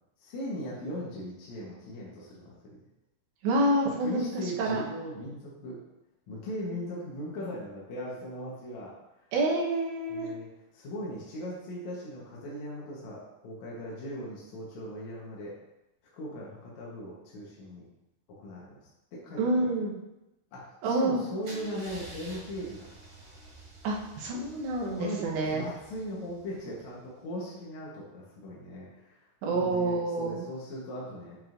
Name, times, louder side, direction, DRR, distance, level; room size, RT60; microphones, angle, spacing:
voice 1, 0.2-2.8 4.0-5.8 6.3-9.3 10.1-10.5 10.7-15.6 16.1-17.8 18.4-18.8 19.1-19.7 20.5-22.9 24.9-25.3 25.5-31.4, equal, 70° left, -5 dB, 1.8 m, -39 dB
voice 2, 3.4-4.3 4.6-4.8 9.3-10.3 19.4-19.9 20.8-21.2 23.8-25.6 29.4-30.4, right 2 dB, 85° right, -2 dB, 3.3 m, -27 dB
Car / Engine starting / Idling, 21.4-27.3, right 2 dB, 65° right, 4.2 m, -50 dB
8.9 x 6.1 x 2.6 m, 0.94 s
omnidirectional pair, 4.9 m